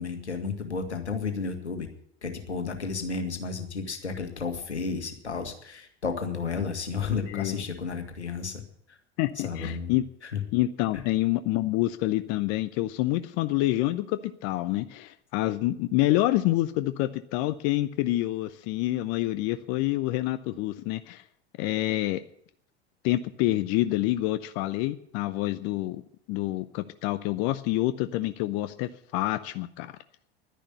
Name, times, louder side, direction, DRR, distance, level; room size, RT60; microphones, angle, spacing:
voice 1, 0.0-1.9 2.2-8.6 9.4-9.9 10.2-10.4 10.9-11.0, left 5 dB, 85° left, 6 dB, 2.0 m, -32 dB
voice 2, 7.3-7.6 9.2-10.0 10.5-21.2 21.6-22.2 23.0-26.0 26.3-29.9, left 16 dB, 45° left, 12 dB, 0.7 m, -27 dB
11.5 x 10.0 x 8.0 m, 0.67 s
figure-of-eight pair, 80°, 33 cm